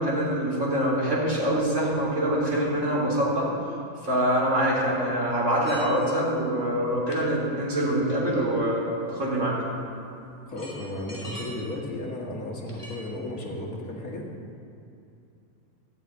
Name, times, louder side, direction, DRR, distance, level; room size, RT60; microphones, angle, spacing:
voice 1, 0.0-3.5 4.0-9.6, right 1 dB, 55° right, -6 dB, 4.1 m, -25 dB
sound 1, 5.6-6.3 7.1-7.2 8.1-8.6 10.0-10.1 10.5-11.7 12.6-12.9, equal, 20° left, 2.9 m, -43 dB
voice 2, 10.5-14.3, left 1 dB, 70° left, -1 dB, 2.4 m, -34 dB
13.5 x 7.8 x 9.3 m, 2.6 s
omnidirectional pair, 1.6 m